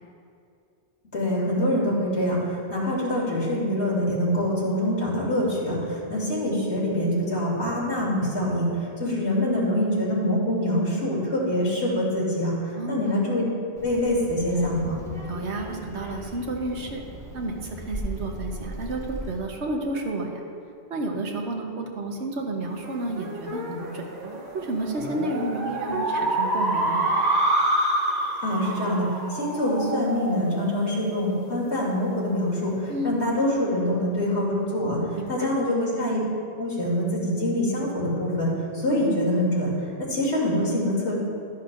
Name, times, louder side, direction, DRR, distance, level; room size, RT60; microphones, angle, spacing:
voice 1, 1.1-2.4 2.7-8.7 9.0-13.5 13.8-15.0 28.4-35.0 35.3-36.2 36.6-38.5 38.7-39.7 40.1-41.1, left 1 dB, 80° left, -6 dB, 2.9 m, -25 dB
voice 2, 12.8-13.1 15.2-17.0 17.3-20.4 20.9-24.0 24.5-27.1 32.9-33.2 35.1-35.5, right 2 dB, 75° right, 1 dB, 1.3 m, -31 dB
Child speech kid speaking, 13.8-19.4, equal, 5° left, 1.0 m, -38 dB
sound 1, 22.8-31.7, right 1 dB, 40° right, 1.0 m, -27 dB
12.5 x 10.5 x 2.5 m, 2.6 s
omnidirectional pair, 1.2 m